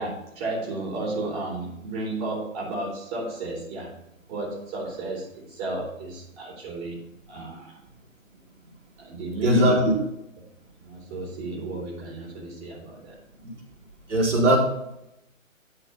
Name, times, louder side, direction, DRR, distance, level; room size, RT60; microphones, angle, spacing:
voice 1, 0.0-3.9 4.3-7.0 7.3-7.8 9.0-9.7 10.8-13.2, right 2 dB, 25° right, -6 dB, 3.4 m, -33 dB
voice 2, 9.4-10.0 14.1-14.6, right 1 dB, 55° right, -4 dB, 4.5 m, -19 dB
13.5 x 4.5 x 5.8 m, 0.83 s
figure-of-eight pair, 140°, 41 cm